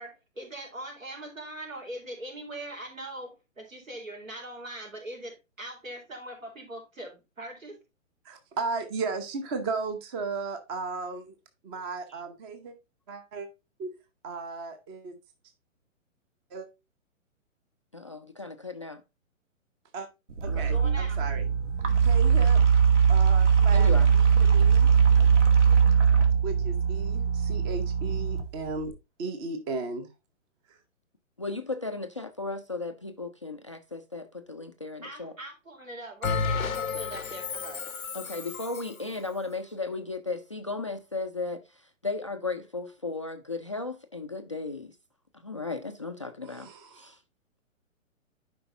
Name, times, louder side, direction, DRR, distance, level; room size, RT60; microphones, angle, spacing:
voice 1, 0.0-7.8 20.7-21.2 35.0-37.9, right 1 dB, 75° right, 3.9 m, -41 dB
voice 2, 8.2-11.3 11.6-12.7 13.1-13.5 13.8-13.9 14.2-15.2 16.5-16.7 19.9-20.1 20.4-21.4 22.0-22.6 23.1-24.9 26.4-28.9 29.2-30.1 30.7-30.8 46.4-47.2, right 4 dB, 20° right, 0.8 m, -35 dB
voice 3, 17.9-19.0 20.5-21.0 23.7-24.1 31.4-35.3 38.1-41.6 42.0-44.9 45.4-47.2, left 3 dB, 25° left, 0.4 m, -35 dB
sound 1, 20.3-28.9, right 6 dB, 60° right, 2.1 m, -21 dB
Bell, 36.2-39.0, left 5 dB, 85° left, 0.7 m, -32 dB
11.0 x 5.1 x 2.6 m
figure-of-eight pair, 125°, 40 cm